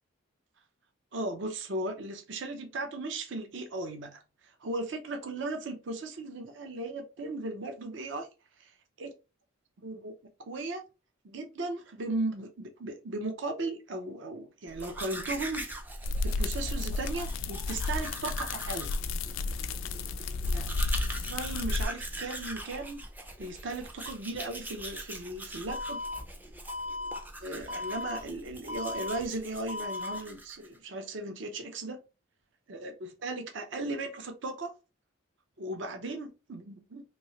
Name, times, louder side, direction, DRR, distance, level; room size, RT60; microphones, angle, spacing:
voice 1, 1.1-8.3 8.6-9.1 9.8-10.1 10.4-10.8 11.2-15.7 16.2-18.9 20.5-20.7 21.3-23.0 23.4-26.0 27.4-32.0 32.7-34.7 35.6-37.0, right 2 dB, 60° right, 0.6 m, -37 dB
Domestic sounds home sounds, 14.7-30.8, right 1 dB, 10° right, 0.3 m, -43 dB
sound 1, 16.0-21.9, left 3 dB, 75° left, 0.3 m, -32 dB
Alarm, 25.7-26.2 26.7-27.2 27.7-28.2 28.7-29.2 29.7-30.2, left 3 dB, 30° right, 0.9 m, -36 dB
3.0 x 2.7 x 2.9 m
head